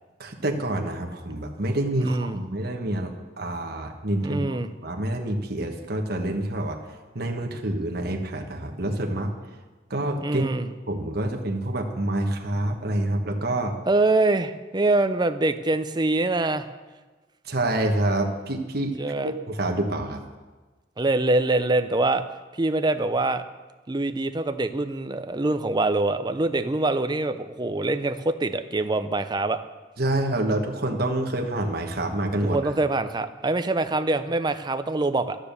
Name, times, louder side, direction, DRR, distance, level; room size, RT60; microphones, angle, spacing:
voice 1, 0.2-6.8 7.1-9.3 9.9-10.5 10.9-13.8 17.4-18.9 19.2-20.2 30.0-32.7, right 1 dB, 55° right, 2 dB, 1.3 m, -27 dB
voice 2, 2.0-2.4 4.2-4.7 10.2-10.7 13.9-16.7 19.0-19.3 21.0-22.2 22.5-23.4 23.9-29.6 32.4-35.4, right 2 dB, 25° right, 10 dB, 0.6 m, -24 dB
12.0 x 9.7 x 6.8 m, 1.3 s
head